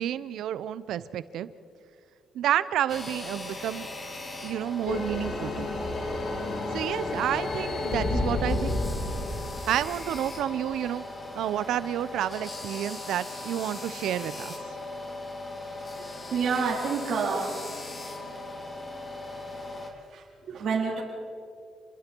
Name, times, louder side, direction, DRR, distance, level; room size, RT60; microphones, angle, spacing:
voice 1, 0.0-1.5 2.3-3.9 4.4-5.8 6.7-8.7 9.7-11.0 11.3-14.6, right 11 dB, 80° right, 16 dB, 0.7 m, -30 dB
sound 1, 2.9-19.9, left 2 dB, 30° left, 3.7 m, -39 dB
sound 2, 4.9-10.6, left 2 dB, 50° left, 3.3 m, -31 dB
voice 2, 15.9-17.6 19.8-21.0, right 5 dB, 65° right, -5 dB, 4.3 m, -29 dB
29.5 x 22.0 x 4.6 m, 2.4 s
cardioid pair, 90°, 0 cm